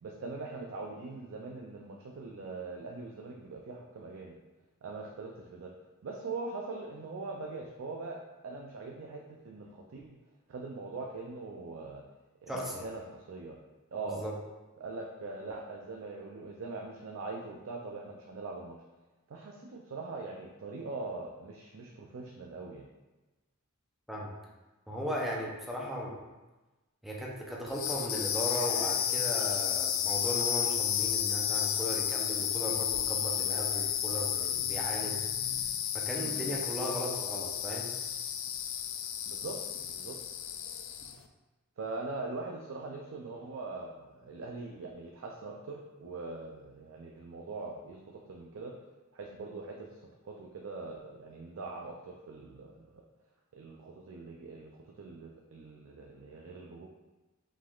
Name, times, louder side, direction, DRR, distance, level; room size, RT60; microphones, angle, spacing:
voice 1, 0.0-4.3 4.8-5.7 6.0-8.2 8.4-10.1 10.5-12.0 12.4-13.6 13.9-14.2 14.8-18.8 19.3-22.8 36.2-36.5 39.3-39.6 40.0-40.2 41.8-48.7 49.1-52.9 53.5-54.7 55.0-56.9, right 3 dB, 65° right, 0 dB, 0.4 m, -42 dB
voice 2, 12.5-12.8 14.1-14.3 24.1-24.3 24.9-26.2 27.0-35.2 35.9-37.9, equal, ahead, -3 dB, 0.6 m, -37 dB
sound 1, 27.7-41.2, left 9 dB, 65° left, 0.3 m, -32 dB
5.1 x 3.7 x 2.4 m, 1.1 s
head